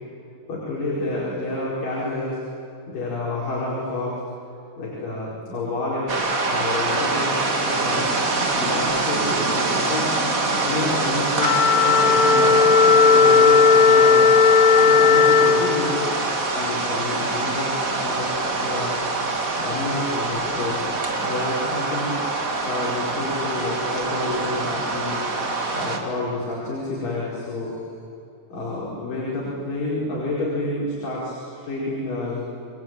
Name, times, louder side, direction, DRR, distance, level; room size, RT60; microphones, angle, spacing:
voice 1, 0.5-2.4 2.9-4.1 4.8-8.0 8.6-10.1 10.6-12.6 13.1-14.3 14.8-16.1 16.5-18.3 18.6-19.2 19.5-20.8 21.2-22.2 22.6-25.3 25.7-27.8 28.5-32.4, left 2 dB, 85° left, -6 dB, 6.7 m, -29 dB
sound 1, 6.1-26.0, right 3 dB, 30° right, 2.2 m, -25 dB
sound 2, 7.7-13.3, equal, 60° right, 8.5 m, -34 dB
Wind instrument woodwind instrument, 11.3-15.6, left 5 dB, 45° left, 2.3 m, -15 dB
29.5 x 20.5 x 9.2 m, 2.8 s
omnidirectional pair, 3.8 m